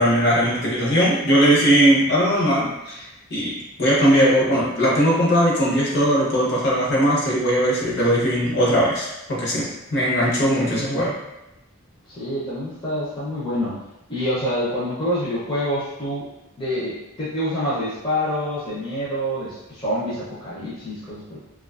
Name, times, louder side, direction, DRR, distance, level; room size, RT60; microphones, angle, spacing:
voice 1, 0.0-3.5 3.8-11.1, equal, 50° left, -5 dB, 0.8 m, -19 dB
voice 2, 12.1-13.8 14.1-16.2 16.6-21.4, equal, 25° left, -10 dB, 0.5 m, -26 dB
2.6 x 2.3 x 2.3 m, 0.93 s
head